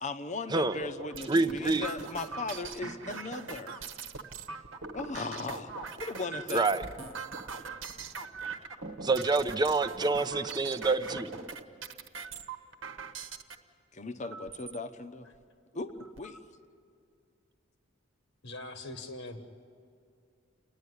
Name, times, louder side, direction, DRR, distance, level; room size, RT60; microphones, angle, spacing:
voice 1, 0.0-3.9 4.9-6.7 13.9-15.3 15.7-16.4, left 3 dB, 35° left, 10 dB, 0.9 m, -38 dB
sound 1, 0.7-13.6 14.2-14.8 15.3-15.4 15.7-16.4, right 4 dB, 60° right, 1.2 m, -41 dB
voice 2, 1.3-1.9 6.5-6.8 9.0-11.3, right 3 dB, 20° right, 8 dB, 0.7 m, -27 dB
voice 3, 18.4-19.4, left 2 dB, 65° left, 7 dB, 1.3 m, -41 dB
29.0 x 10.5 x 9.7 m, 2.4 s
head